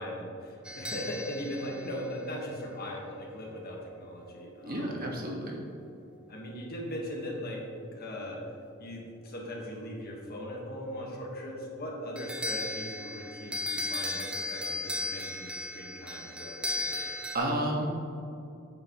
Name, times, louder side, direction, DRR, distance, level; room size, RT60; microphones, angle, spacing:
voice 1, 0.0-5.0 6.3-7.6 7.9-8.4 8.8-16.9, equal, 45° left, -1 dB, 1.5 m, -39 dB
sound 1, 0.6-2.9 12.2-17.4, left 2 dB, 5° right, 0.5 m, -36 dB
voice 2, 4.6-5.5 16.9-17.9, right 1 dB, 45° right, -1 dB, 1.5 m, -32 dB
9.5 x 7.9 x 3.1 m, 2.6 s
head